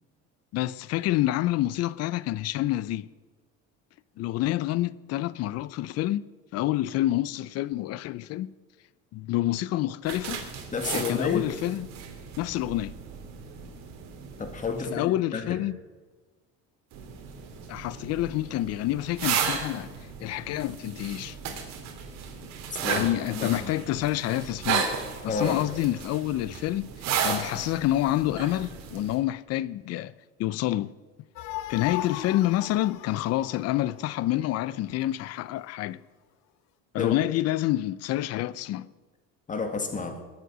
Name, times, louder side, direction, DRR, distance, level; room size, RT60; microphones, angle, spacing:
voice 1, 0.5-3.1 4.2-8.5 9.1-10.4 10.9-11.9 12.4-12.9 14.9-15.8 17.7-19.9 20.2-21.4 22.9-24.9 25.2-26.9 27.2-30.1 30.4-30.9 31.7-36.0 36.9-38.9, left 15 dB, 55° left, 0.6 m, -28 dB
sound 1, 10.0-14.9 16.9-29.2, right 7 dB, 60° right, 2.7 m, -34 dB
voice 2, 10.7-11.4 14.4-15.6 22.8-23.5 25.3-25.6 37.0-37.1 39.5-40.2, left 4 dB, 25° left, 1.9 m, -30 dB
sound 2, 31.4-34.8, left 14 dB, 80° left, 0.9 m, -38 dB
21.0 x 7.5 x 6.2 m
cardioid pair, 140°, 31 cm